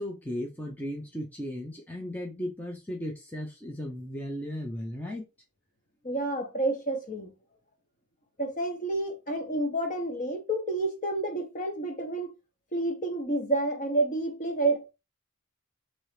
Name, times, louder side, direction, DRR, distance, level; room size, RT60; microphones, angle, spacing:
voice 1, 0.0-5.2, equal, 5° left, 0.6 m, -36 dB
voice 2, 6.0-7.3 8.4-12.3 12.7-14.9, right 2 dB, 35° left, 1.1 m, -29 dB
4.5 x 2.7 x 3.2 m
head